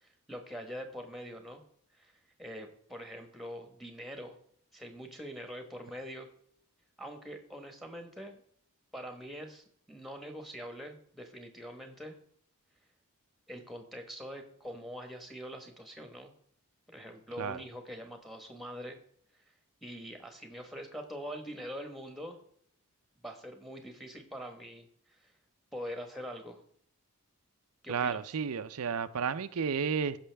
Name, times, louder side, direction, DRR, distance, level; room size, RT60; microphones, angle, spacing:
voice 1, 0.0-1.6 1.9-2.1 2.4-4.4 4.7-6.3 7.0-8.4 8.9-12.2 13.5-16.3 16.9-19.0 19.8-22.4 23.2-24.9 25.2-25.3 25.7-26.6 27.8-28.2, equal, ahead, 1.2 m, -44 dB
voice 2, 27.9-30.2, right 6 dB, 85° right, 0.5 m, -32 dB
15.0 x 5.7 x 3.4 m
head